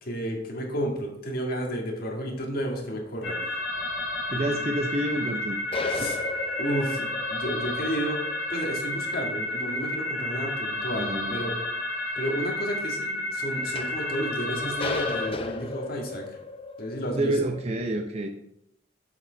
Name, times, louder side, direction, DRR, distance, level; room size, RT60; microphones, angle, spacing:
voice 1, 0.0-3.4 4.3-4.5 5.9-6.2 6.6-11.5 12.2-16.4 16.8-17.3, equal, 50° left, 0 dB, 1.8 m, -32 dB
sound 1, 2.3-3.3 3.8-3.9 4.5-4.6 5.0-5.4 5.7-11.2 13.6-17.7, left 3 dB, 30° left, 0.5 m, -36 dB
sound 2, 3.2-15.3, left 1 dB, 85° left, 2.3 m, -31 dB
voice 2, 4.3-5.6 6.0-6.1 10.9-11.3 17.1-18.3, right 1 dB, 35° right, 4 dB, 0.6 m, -28 dB
7.6 x 5.9 x 4.0 m, 0.77 s
head